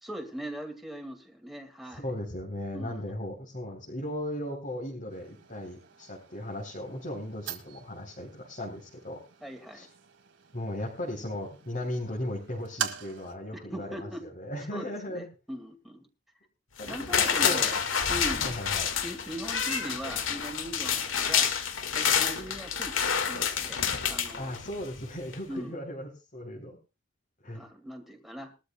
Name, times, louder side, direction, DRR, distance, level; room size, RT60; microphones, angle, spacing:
voice 1, 0.0-2.0 2.7-3.1 9.4-9.9 13.5-14.2 14.7-16.1 16.9-18.5 19.0-21.5 21.9-23.8 24.1-24.6 25.5-25.8 27.5-28.5, equal, ahead, 3 dB, 2.1 m, -40 dB
voice 2, 2.0-9.2 9.7-9.8 10.5-15.3 16.8-17.7 18.4-18.9 24.4-26.8 27.4-27.7, left 1 dB, 45° left, -1 dB, 3.5 m, -37 dB
sound 1, 5.1-13.4, right 9 dB, 65° right, 1.7 m, -43 dB
sound 2, 16.8-24.9 25.3-25.4, left 7 dB, 80° left, 1.7 m, -28 dB
21.5 x 13.0 x 2.3 m, 0.30 s
head